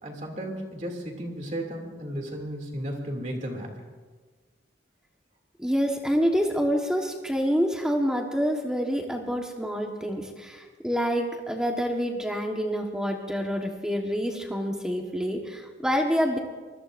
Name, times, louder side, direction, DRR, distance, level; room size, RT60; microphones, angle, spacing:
voice 1, 0.0-3.7, equal, 40° right, 2 dB, 2.5 m, -34 dB
voice 2, 5.6-16.4, equal, 5° right, 1 dB, 1.3 m, -27 dB
25.0 x 20.0 x 2.6 m, 1.4 s
head